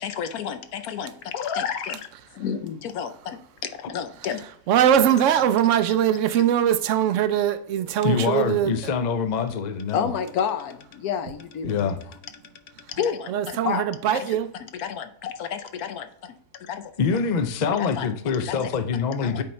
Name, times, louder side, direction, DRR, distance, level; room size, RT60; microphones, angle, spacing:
voice 1, 0.0-2.1 2.3-4.5 5.3-5.5 5.9-6.4 9.9-11.9 12.9-16.3 16.7-16.8 17.8-18.1 18.4-18.6 19.2-19.4, left 7 dB, 75° left, 1.1 m, -31 dB
voice 2, 4.7-8.7 13.3-14.5, right 10 dB, 65° right, 0.8 m, -21 dB
voice 3, 7.8-10.1 11.6-12.0 17.0-19.4, left 6 dB, 55° left, 0.5 m, -25 dB
8.8 x 4.3 x 3.2 m
omnidirectional pair, 1.6 m